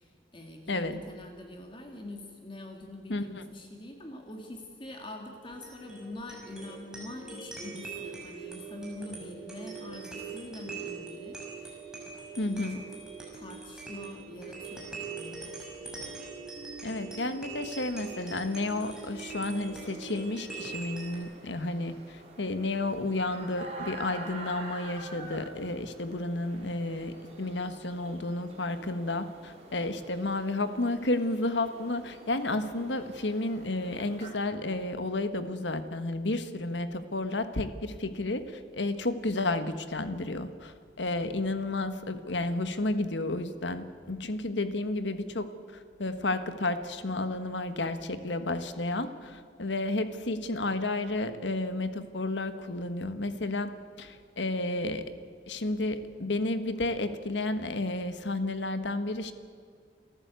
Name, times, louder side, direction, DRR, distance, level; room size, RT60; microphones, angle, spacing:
voice 1, 0.0-11.8 12.5-12.8 13.3-15.6 15.8-16.0, left 1 dB, 25° left, 2 dB, 2.2 m, -44 dB
voice 2, 0.7-1.0 3.1-3.4 12.4-12.8 16.8-22.0 22.4-45.5 46.0-55.1 55.5-59.3, left 2 dB, 80° left, 10 dB, 1.5 m, -32 dB
sound 1, 5.4-21.2, right 4 dB, 5° right, 6.0 m, -42 dB
sound 2, 17.7-34.3, right 2 dB, 35° right, 4.2 m, -48 dB
28.5 x 14.5 x 8.3 m, 2.1 s
head